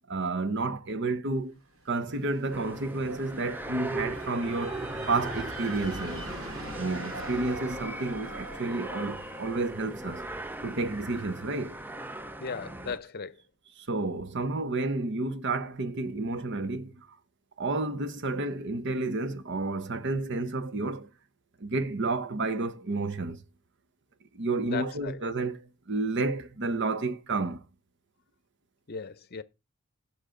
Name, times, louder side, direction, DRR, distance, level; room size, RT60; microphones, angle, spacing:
voice 1, 0.1-1.5 1.9-6.2 6.8-10.2 10.6-11.8 13.8-16.9 17.6-21.1 21.6-23.4 24.3-25.6 25.9-27.6, right 3 dB, 60° right, 0.9 m, -31 dB
sound 1, 1.8-11.6, right 2 dB, 80° right, 2.5 m, -44 dB
sound 2, 2.5-13.0, right 1 dB, 10° right, 0.5 m, -38 dB
voice 2, 12.4-13.4 24.7-25.2 28.9-29.4, left 5 dB, 50° left, 0.8 m, -36 dB
15.0 x 6.5 x 3.8 m
head